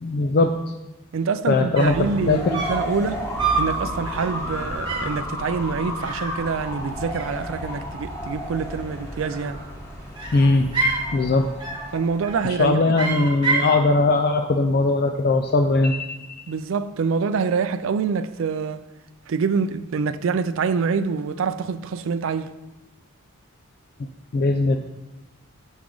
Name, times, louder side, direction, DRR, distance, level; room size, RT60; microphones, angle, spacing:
voice 1, 0.0-0.5 1.5-1.9 2.3-2.5 10.3-10.7 11.1-11.5 12.6-16.2 24.3-24.8, left 3 dB, 45° left, 0.4 m, -19 dB
voice 2, 1.1-3.3 3.6-9.6 11.9-12.8 16.5-18.8 19.3-22.5, right 5 dB, 65° right, 0.4 m, -25 dB
sound 1, 1.8-12.7, equal, 15° left, 1.4 m, -33 dB
sound 2, 1.8-2.1 2.5-2.9 3.4-3.8 4.1-4.4 4.9-5.2 6.0-6.9 7.1-7.8 9.1-9.7 10.1-11.1 11.6-11.9 12.2-12.6 12.9-13.8, right 4 dB, 20° right, 1.2 m, -28 dB
7.1 x 6.2 x 3.8 m
head